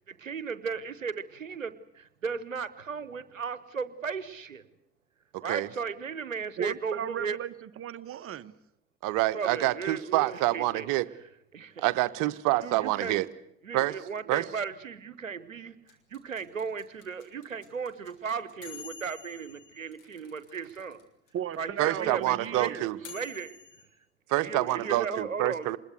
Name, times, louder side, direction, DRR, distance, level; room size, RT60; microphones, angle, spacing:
voice 1, 0.2-4.6 5.4-7.4 9.3-10.9 11.5-12.1 12.6-13.2 13.6-15.7 16.1-21.0 21.6-23.6 24.4-25.7, right 5 dB, 90° right, 16 dB, 0.9 m, -36 dB
voice 2, 6.6-8.5 21.3-22.8, right 9 dB, 35° right, 13 dB, 1.0 m, -36 dB
voice 3, 9.0-11.1 11.8-13.3 13.7-13.9 14.3-14.4 21.8-23.0 24.3-25.8, right 17 dB, 55° right, 14 dB, 1.1 m, -27 dB
sound 1, 15.9-21.0 21.3-21.4 21.5-23.8, left 8 dB, 75° left, 3.6 m, -48 dB
25.5 x 21.0 x 8.0 m, 0.74 s
figure-of-eight pair, 55°, 38 cm